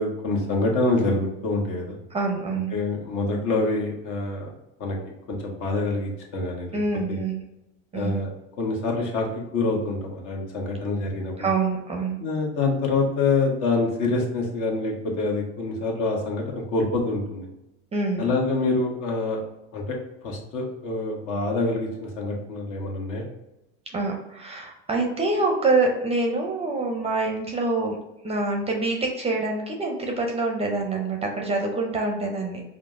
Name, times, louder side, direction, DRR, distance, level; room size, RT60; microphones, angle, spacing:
voice 1, 0.0-2.0 2.7-4.5 4.8-5.0 5.3-6.8 7.1-7.2 7.9-8.3 8.6-11.5 12.2-16.4 16.7-17.5 18.2-19.4 19.7-20.0 20.2-23.3, left 3 dB, 60° left, 0 dB, 1.3 m, -26 dB
voice 2, 2.1-2.8 6.7-7.4 7.9-8.2 11.4-12.2 17.9-18.3 23.9-28.0 28.2-32.6, right 3 dB, 15° right, 2 dB, 0.6 m, -26 dB
4.9 x 2.1 x 3.6 m, 0.91 s
supercardioid pair, 115°, 35 cm